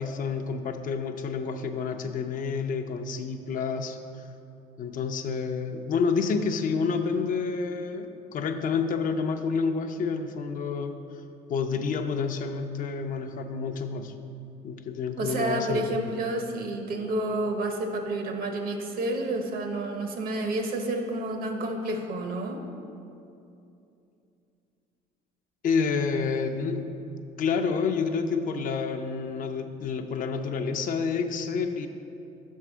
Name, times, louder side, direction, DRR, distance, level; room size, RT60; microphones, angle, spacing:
voice 1, 0.0-4.0 4.8-11.0 11.5-14.1 14.6-16.0 25.6-26.9 27.4-31.9, left 5 dB, 55° left, 6 dB, 0.5 m, -29 dB
voice 2, 15.2-22.6, right 2 dB, 60° right, 4 dB, 0.9 m, -30 dB
5.9 x 4.6 x 6.0 m, 2.7 s
cardioid pair, 110°, 17 cm